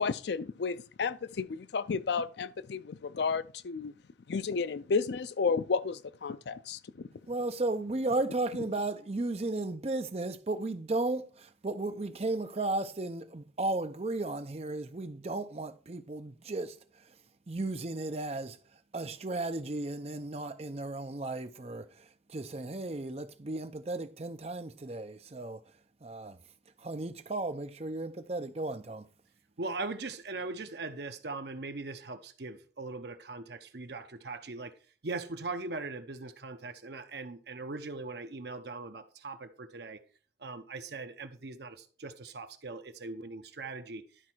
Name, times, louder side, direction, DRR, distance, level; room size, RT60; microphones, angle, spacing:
voice 1, 0.0-3.9 4.3-7.1, left 5 dB, 65° left, 0.4 m, -32 dB
voice 2, 7.3-16.8 17.5-18.6 18.9-25.6 26.0-26.4 26.8-29.1, right 2 dB, 35° right, 0.6 m, -34 dB
voice 3, 29.6-34.7 35.0-40.0 40.4-44.0, right 3 dB, 65° right, 0.8 m, -40 dB
12.0 x 4.2 x 4.5 m
head